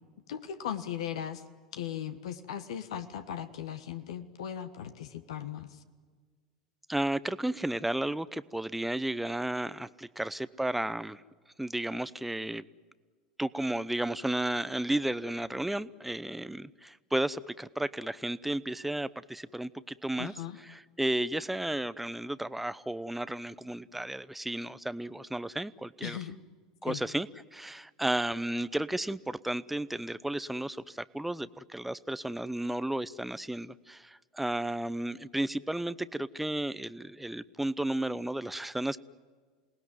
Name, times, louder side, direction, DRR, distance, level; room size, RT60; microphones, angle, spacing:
voice 1, 0.3-1.4 1.7-5.8 20.2-20.6 26.0-26.4 26.9-27.0, left 9 dB, 70° left, 10 dB, 1.4 m, -38 dB
voice 2, 6.9-11.2 11.6-12.6 13.4-26.2 26.8-39.0, right 1 dB, 5° right, 16 dB, 0.7 m, -33 dB
28.0 x 19.5 x 9.4 m, 1.5 s
figure-of-eight pair, 80°, 3 cm